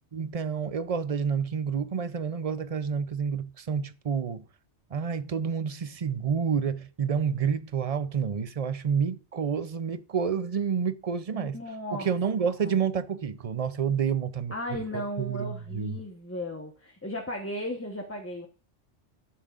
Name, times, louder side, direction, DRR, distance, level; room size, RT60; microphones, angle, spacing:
voice 1, 0.1-4.4 4.9-11.6 12.0-16.0, right 6 dB, 40° right, 0.6 m, -29 dB
voice 2, 11.3-12.1 12.6-12.8 14.5-18.5, left 1 dB, 10° left, 1.2 m, -36 dB
12.5 x 9.9 x 2.5 m
omnidirectional pair, 1.2 m